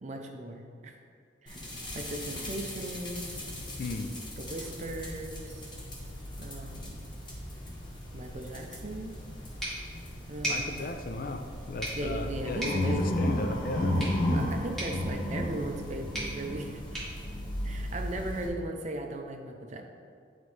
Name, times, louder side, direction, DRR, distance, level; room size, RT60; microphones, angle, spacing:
voice 1, 0.0-0.9 1.4-1.7 1.9-3.5 4.4-5.7 6.4-7.1 8.1-9.1 10.3-10.9 11.9-13.2 13.9-14.0 14.2-17.0 17.6-19.8, right 1 dB, 35° right, 3 dB, 0.5 m, -38 dB
sound 1, 1.5-18.5, equal, 25° left, 0.9 m, -41 dB
voice 2, 3.8-4.1 10.5-13.9, left 2 dB, 45° left, 6 dB, 0.4 m, -36 dB
sound 2, 7.0-7.1 8.1-8.2 9.6-9.7 10.5-10.7 11.5-11.7 12.4-16.8 17.1-17.9, left 1 dB, 90° left, 1.5 m, -30 dB
sound 3, 9.6-18.3, right 1 dB, ahead, 1.5 m, -40 dB
9.0 x 4.0 x 3.2 m, 2.3 s
head